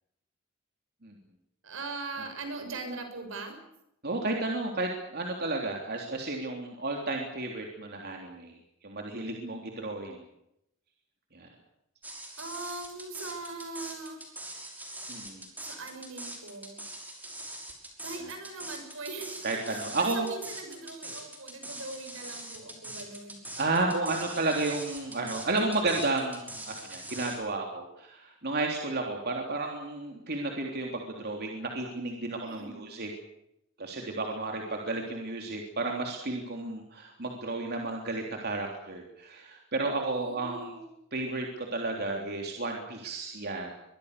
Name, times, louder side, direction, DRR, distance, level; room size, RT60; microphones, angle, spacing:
voice 1, 1.6-3.6 12.4-14.2 15.6-16.8 18.0-19.4 19.9-23.4 32.4-32.8 40.1-40.9, right 3 dB, 75° right, 6 dB, 6.8 m, -40 dB
voice 2, 4.0-8.5 8.8-10.2 11.3-11.5 15.1-15.4 18.2-18.3 19.4-20.3 23.6-33.1 33.8-40.7 41.1-43.7, right 2 dB, 55° right, 1 dB, 3.4 m, -32 dB
sound 1, 12.0-27.4, right 1 dB, 10° right, 5.8 m, -42 dB
24.0 x 23.0 x 6.8 m, 0.81 s
head